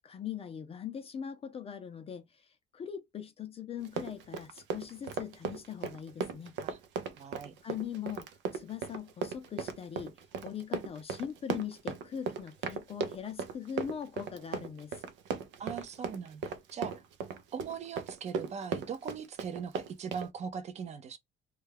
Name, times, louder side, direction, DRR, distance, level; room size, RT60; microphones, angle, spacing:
voice 1, 0.0-6.5 7.6-8.3 8.5-10.2 10.4-15.0, left 8 dB, 30° left, 0.4 m, -41 dB
Run, 3.8-20.3, right 6 dB, 85° right, 0.5 m, -37 dB
voice 2, 7.2-7.6 15.6-17.0 17.5-21.2, right 7 dB, 35° right, 0.5 m, -40 dB
2.2 x 2.2 x 3.2 m
cardioid pair, 135°, 19 cm